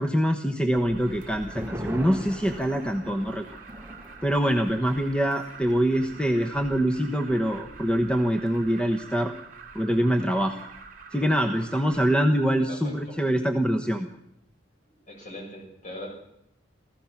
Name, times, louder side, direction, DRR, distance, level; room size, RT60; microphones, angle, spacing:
voice 1, 0.0-3.4 4.2-9.3 9.7-10.6 11.1-14.1, equal, 5° left, 5 dB, 1.1 m, -24 dB
Alarm, 0.7-12.3, right 4 dB, 50° right, 3.2 m, -46 dB
sound 1, 0.9-7.9 8.2-8.3 8.7-9.1, equal, 15° right, 1.4 m, -42 dB
voice 2, 15.1-16.1, left 1 dB, 40° left, 1 dB, 6.8 m, -40 dB
28.0 x 16.0 x 6.0 m, 0.79 s
head